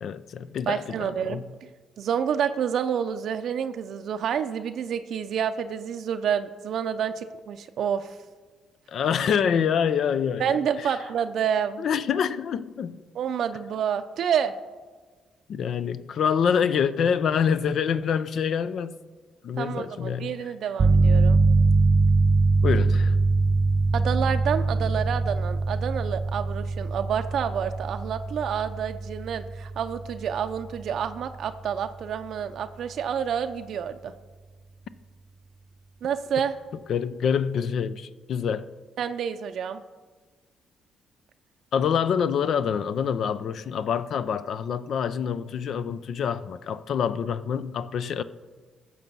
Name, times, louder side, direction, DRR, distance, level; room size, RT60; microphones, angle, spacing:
voice 1, 0.0-1.5 8.9-10.9 11.8-13.0 15.5-18.9 19.4-20.3 22.6-23.1 36.9-38.7 41.7-48.2, left 7 dB, 65° left, 0.5 m, -26 dB
voice 2, 0.7-1.7 2.0-8.1 10.4-11.9 13.1-14.5 19.6-21.4 23.9-34.1 36.0-36.6 39.0-39.8, right 8 dB, 70° right, 0.5 m, -28 dB
sound 1, 20.8-31.3, right 3 dB, 35° right, 0.8 m, -23 dB
14.5 x 6.2 x 5.4 m
cardioid pair, 90°, 0 cm